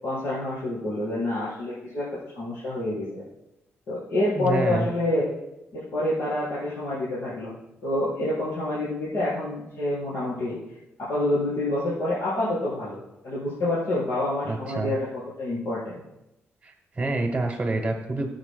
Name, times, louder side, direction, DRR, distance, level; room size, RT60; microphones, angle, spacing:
voice 1, 0.0-3.2 3.9-5.3 5.7-7.5 7.8-10.6 11.0-15.1 15.4-16.0, left 1 dB, 70° left, -9 dB, 4.1 m, -27 dB
voice 2, 4.4-4.9 14.4-14.9 16.6-18.3, right 2 dB, 15° right, 2 dB, 1.0 m, -27 dB
19.0 x 8.2 x 2.2 m, 0.91 s
wide cardioid pair, 175°, 5 cm